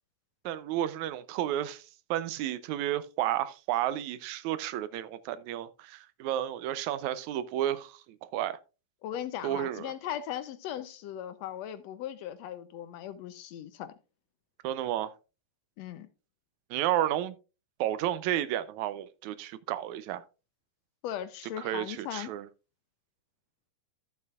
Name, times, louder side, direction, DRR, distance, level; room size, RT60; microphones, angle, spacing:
voice 1, 0.5-8.6 9.4-9.9 14.6-15.1 16.7-17.4 17.8-20.2 21.6-22.5, right 12 dB, 85° right, 2.0 m, -32 dB
voice 2, 9.0-13.9 15.8-16.1 21.0-22.3, left 11 dB, 75° left, 1.7 m, -38 dB
13.5 x 7.5 x 2.3 m
omnidirectional pair, 3.3 m